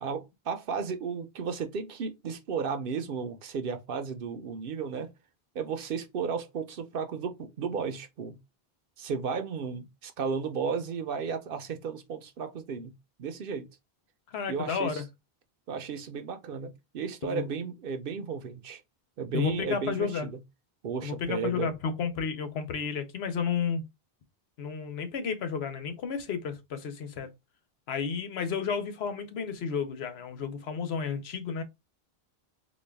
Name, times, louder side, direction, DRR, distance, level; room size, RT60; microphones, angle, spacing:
voice 1, 0.0-5.1 5.5-8.4 9.0-12.9 13.2-13.7 14.5-15.0 15.7-18.8 19.2-20.1 20.8-21.7, right 6 dB, 65° right, 0.8 m, -34 dB
voice 2, 14.3-15.0 17.2-17.5 19.3-20.3 21.0-23.8 24.6-27.3 27.9-31.6, left 6 dB, 80° left, 1.0 m, -32 dB
4.0 x 2.3 x 3.3 m
omnidirectional pair, 1.0 m